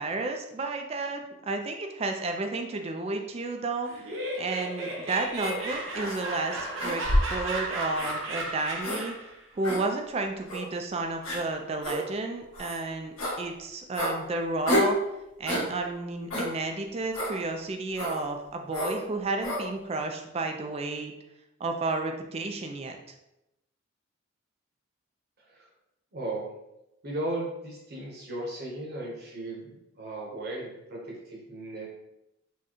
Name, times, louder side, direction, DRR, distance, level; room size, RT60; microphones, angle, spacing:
voice 1, 0.0-3.9 4.4-7.0 7.3-9.2 9.5-15.0 15.4-21.1 21.6-23.0, right 3 dB, 30° right, 4 dB, 0.3 m, -32 dB
Laughter, 3.9-9.3, right 1 dB, 70° right, 0.7 m, -34 dB
sound 1, 5.4-5.6 6.0-6.2 6.8-7.4 7.9-8.1 8.8-9.0 9.6-9.8 10.5-10.6 11.2-11.4 11.8-12.0 12.5-12.8 13.2-13.4 13.9-14.1 14.7-15.0 15.5-15.7 16.3-16.5 17.1-17.3 18.0-18.2 18.7-19.0 19.4-19.6, left 1 dB, 85° left, 1.2 m, -28 dB
voice 2, 26.1-26.5 27.0-31.9, right 1 dB, 50° right, -3 dB, 0.9 m, -36 dB
4.4 x 2.2 x 3.0 m, 0.89 s
head